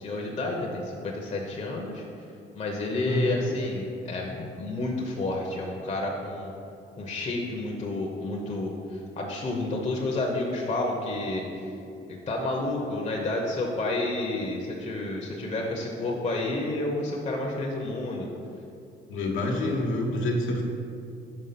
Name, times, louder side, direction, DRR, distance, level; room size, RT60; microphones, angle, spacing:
voice 1, 0.0-2.0 2.5-6.5 7.0-11.4 12.1-18.3, left 2 dB, 35° left, -1 dB, 0.8 m, -30 dB
voice 2, 3.1-3.4 19.1-20.6, left 1 dB, 85° left, -1 dB, 1.1 m, -27 dB
5.4 x 4.6 x 5.8 m, 2.6 s
cardioid pair, 90°, 20 cm